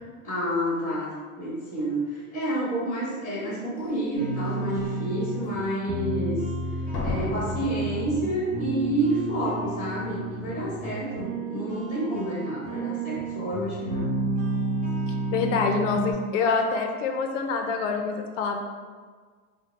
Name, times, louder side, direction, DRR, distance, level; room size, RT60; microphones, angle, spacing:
voice 1, 0.2-6.4 7.0-14.1, right 1 dB, 15° left, -7 dB, 1.5 m, -29 dB
Slam, 3.8-3.9 4.5-4.9 6.9-8.8 9.1-9.2, left 2 dB, 35° left, 0.8 m, -34 dB
sound 1, 4.1-16.1, right 2 dB, 20° right, 0.5 m, -31 dB
voice 2, 15.3-18.6, left 4 dB, 60° left, 4 dB, 0.5 m, -26 dB
4.2 x 2.1 x 3.1 m, 1.5 s
supercardioid pair, 150°, 44 cm